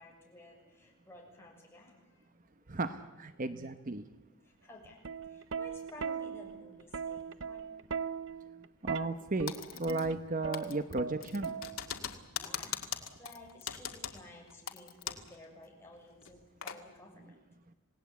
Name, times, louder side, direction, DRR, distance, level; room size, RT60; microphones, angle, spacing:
voice 1, 0.0-2.2 2.6-2.7 4.4-5.0 5.3-7.7 12.0-17.3, left 1 dB, 10° left, -1 dB, 6.7 m, -54 dB
voice 2, 2.7-4.0 8.8-11.5, right 3 dB, 40° right, 10 dB, 0.9 m, -35 dB
Plucked string instrument, 4.8-12.1 13.2-13.5, right 6 dB, 65° right, 0.9 m, -39 dB
Typing, 9.5-10.3 10.5-15.4 15.6-15.7 16.2-16.8, left 9 dB, 85° left, 2.0 m, -41 dB
27.5 x 18.5 x 8.3 m, 1.2 s
head